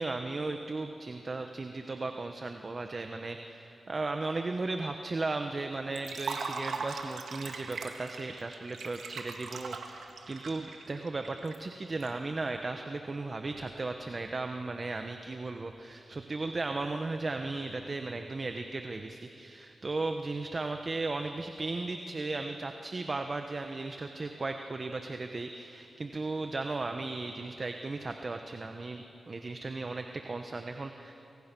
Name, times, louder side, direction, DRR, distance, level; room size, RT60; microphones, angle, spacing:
voice 1, 0.0-31.1, right 3 dB, 40° right, 6 dB, 1.1 m, -36 dB
Liquid, 6.0-12.1, right 4 dB, 85° right, 1.9 m, -40 dB
27.5 x 22.5 x 6.1 m, 3.0 s
cardioid pair, 70°, 0 cm